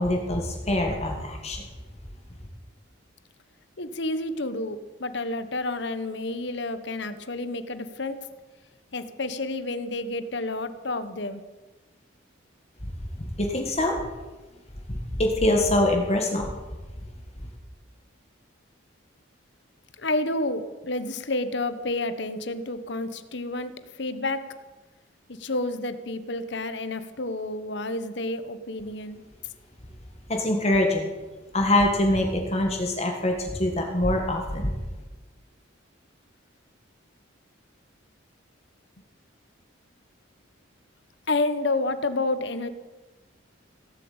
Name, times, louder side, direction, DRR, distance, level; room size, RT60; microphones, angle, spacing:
voice 1, 0.0-1.6 13.2-14.0 14.9-16.5 30.3-31.1 31.5-34.7, left 1 dB, 30° left, 2 dB, 1.8 m, -24 dB
voice 2, 3.8-8.2 8.9-11.4 20.0-23.7 24.0-24.4 25.3-29.2 41.3-42.7, left 2 dB, 60° left, 12 dB, 1.1 m, -30 dB
17.0 x 7.9 x 8.7 m, 1.2 s
head